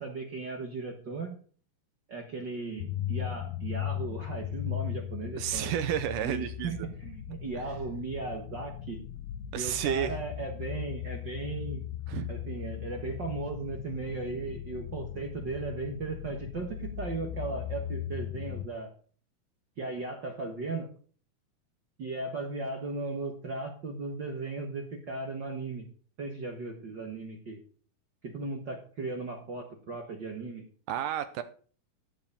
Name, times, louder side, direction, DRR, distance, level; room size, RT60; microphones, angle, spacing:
voice 1, 0.0-1.4 2.1-5.7 6.2-9.0 9.5-11.8 12.3-18.9 19.8-20.9 22.0-25.9 26.2-27.6 28.2-30.6, right 3 dB, 60° right, 3 dB, 1.1 m, -37 dB
sound 1, 2.8-18.7, left 11 dB, 80° left, 2.2 m, -38 dB
voice 2, 5.4-6.9 9.5-10.2 12.1-12.3 30.9-31.4, right 10 dB, 80° right, 11 dB, 2.0 m, -31 dB
14.5 x 5.1 x 6.8 m, 0.43 s
omnidirectional pair, 4.3 m